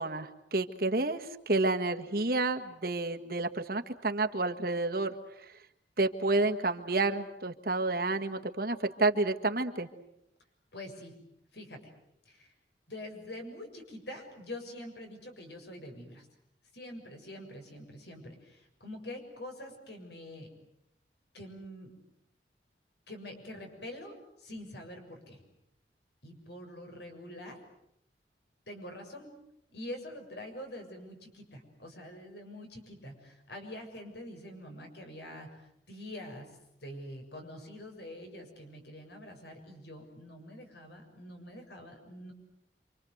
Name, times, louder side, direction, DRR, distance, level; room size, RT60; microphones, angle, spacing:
voice 1, 0.0-5.1 6.0-9.9, right 2 dB, 55° right, 5 dB, 1.7 m, -30 dB
voice 2, 10.7-11.1 11.5-11.8 12.3-12.5 12.9-16.3 16.7-20.5 21.3-21.9 23.1-25.4 26.2-27.6 28.7-29.3 29.7-35.5 35.9-36.5 36.8-42.3, left 1 dB, 70° left, 4 dB, 7.1 m, -45 dB
28.0 x 26.0 x 8.0 m, 0.78 s
head